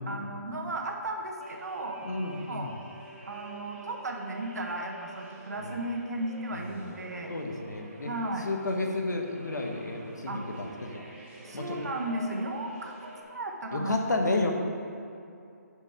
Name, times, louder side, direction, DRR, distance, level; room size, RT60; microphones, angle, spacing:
voice 1, 0.1-2.0 2.5-2.7 3.3-7.3 8.0-8.5 10.3-10.4 11.4-12.9 13.3-14.0, right 2 dB, 70° right, 2 dB, 1.3 m, -35 dB
sound 1, 1.4-13.2, right 2 dB, 35° right, 1.7 m, -47 dB
voice 2, 2.0-2.7 5.6-5.7 6.5-7.0 7.3-8.1 8.4-11.0 11.5-11.8 13.7-14.5, left 2 dB, 85° left, 3 dB, 1.3 m, -32 dB
9.7 x 5.3 x 5.0 m, 2.5 s
hypercardioid pair, 165°, 9 cm